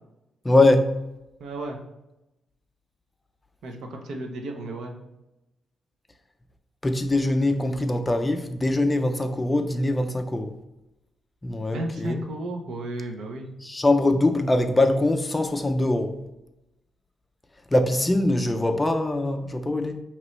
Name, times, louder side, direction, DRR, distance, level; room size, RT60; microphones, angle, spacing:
voice 1, 0.4-0.9 6.8-10.5 11.4-12.2 13.6-16.2 17.7-20.0, left 2 dB, 15° left, 6 dB, 0.4 m, -22 dB
voice 2, 1.4-1.8 3.6-4.9 11.7-13.5, right 1 dB, 75° right, 3 dB, 0.7 m, -33 dB
5.3 x 3.0 x 3.1 m, 0.95 s
wide cardioid pair, 150°, 0 cm